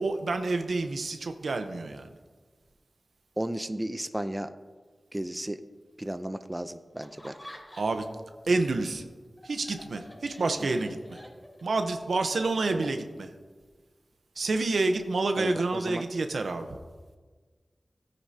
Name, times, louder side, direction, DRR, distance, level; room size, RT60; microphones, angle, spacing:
voice 1, 0.0-2.1 7.8-8.1 8.5-9.0 9.4-11.2 11.6-13.3 14.4-16.8, right 3 dB, 85° right, 7 dB, 0.9 m, -28 dB
voice 2, 3.4-4.6 5.1-5.6 6.0-7.4 10.6-10.7 12.7-12.9 15.4-16.0, right 1 dB, 20° right, 10 dB, 0.6 m, -34 dB
Laughter, 7.0-8.3 8.6-11.8, left 1 dB, 25° left, 3.7 m, -48 dB
17.0 x 9.7 x 2.8 m, 1.4 s
cardioid pair, 50°, 0 cm